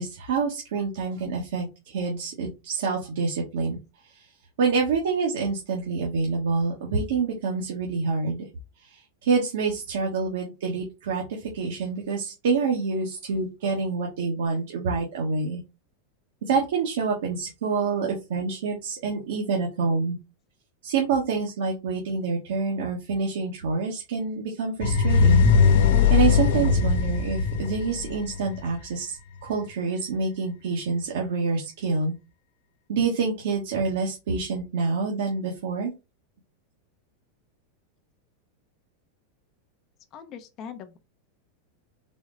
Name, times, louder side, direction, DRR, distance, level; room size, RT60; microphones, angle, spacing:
voice 1, 0.0-3.8 4.0-4.3 4.6-8.4 8.8-15.6 16.4-20.2 20.8-25.5 26.1-32.1 32.9-35.9, right 4 dB, 80° right, 1.1 m, -27 dB
sound 1, 24.8-28.7, left 5 dB, 75° left, 0.9 m, -20 dB
voice 2, 40.1-41.0, left 7 dB, 35° left, 0.5 m, -41 dB
4.1 x 2.0 x 3.7 m
supercardioid pair, 150°, 0 cm